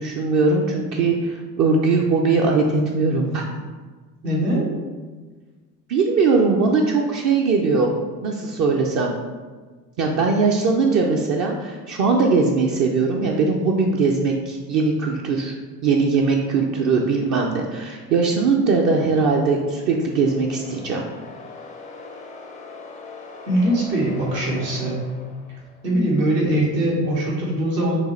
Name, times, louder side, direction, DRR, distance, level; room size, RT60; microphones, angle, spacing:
voice 1, 0.0-3.5 5.9-7.9 8.2-9.1 10.0-15.6 15.8-21.0, right 4 dB, 40° right, 0 dB, 0.5 m, -20 dB
voice 2, 4.2-4.7 23.5-25.0 25.8-28.0, right 1 dB, 80° right, -4 dB, 1.4 m, -21 dB
sound 1, 19.0-26.0, left 3 dB, 15° left, 0.4 m, -41 dB
6.2 x 2.4 x 3.1 m, 1.4 s
figure-of-eight pair, 65°, 49 cm